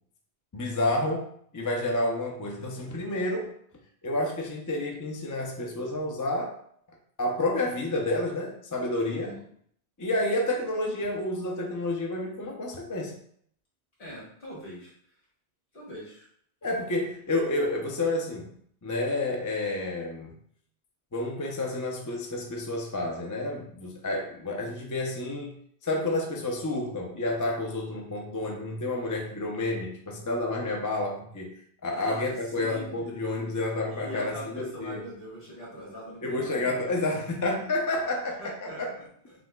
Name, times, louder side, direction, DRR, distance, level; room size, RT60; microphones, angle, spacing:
voice 1, 0.5-1.2 1.5-3.5 4.0-6.6 7.2-9.3 10.0-13.2 16.6-18.5 18.8-20.3 21.1-25.6 25.8-31.5 31.8-35.0 36.2-38.9, left 2 dB, 25° left, 0 dB, 0.5 m, -30 dB
voice 2, 9.0-9.4 14.0-14.9 15.7-16.3 31.9-33.1 33.9-37.1 38.4-39.1, equal, 55° left, -5 dB, 1.9 m, -42 dB
6.0 x 2.9 x 2.3 m, 0.63 s
omnidirectional pair, 1.1 m